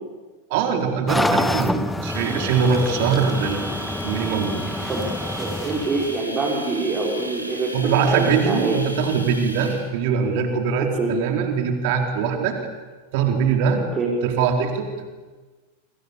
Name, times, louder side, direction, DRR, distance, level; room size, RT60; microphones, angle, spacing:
voice 1, 0.5-4.9 7.7-12.6 13.1-13.8 14.2-15.0, right 6 dB, 50° right, 3 dB, 4.4 m, -22 dB
sound 1, 1.1-6.2, left 2 dB, 5° left, 1.4 m, -27 dB
Domestic sounds home sounds, 2.1-9.8, right 1 dB, 90° right, 5.4 m, -36 dB
voice 2, 4.9-9.0 11.0-11.1 14.0-14.1, right 3 dB, 25° right, -3 dB, 5.5 m, -25 dB
28.0 x 26.5 x 7.3 m, 1.3 s
figure-of-eight pair, 90°, 0 cm